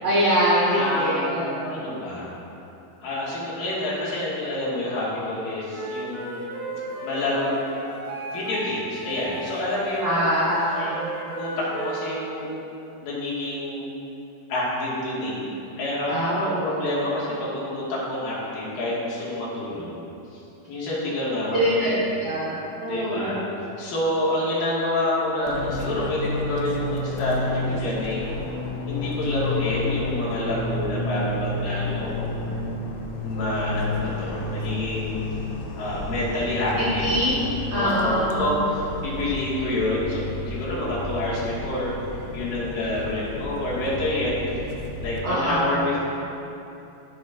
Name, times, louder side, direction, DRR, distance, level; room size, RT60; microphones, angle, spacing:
voice 1, 0.0-1.7 10.0-11.0 16.1-17.0 21.5-21.9 22.2-23.4 36.8-38.5 45.2-45.7, equal, 75° right, -8 dB, 1.4 m, -24 dB
voice 2, 0.7-1.4 1.7-2.3 3.0-6.5 7.0-7.5 8.3-10.3 11.4-12.5 13.0-13.9 14.5-15.4 15.8-20.0 20.3-20.4 20.7-22.0 22.8-23.4 23.8-28.2 28.9-32.5 33.2-35.2 35.8-37.1 37.7-41.9 42.3-44.3 45.0-46.0, left 1 dB, 70° left, -8 dB, 3.1 m, -28 dB
Wind instrument woodwind instrument, 5.7-8.6 8.9-12.1, right 2 dB, 40° right, 1.9 m, -34 dB
Fixed-wing aircraft airplane, 25.5-45.2, left 2 dB, 85° left, 2.6 m, -31 dB
13.5 x 5.6 x 2.4 m, 2.9 s
omnidirectional pair, 4.5 m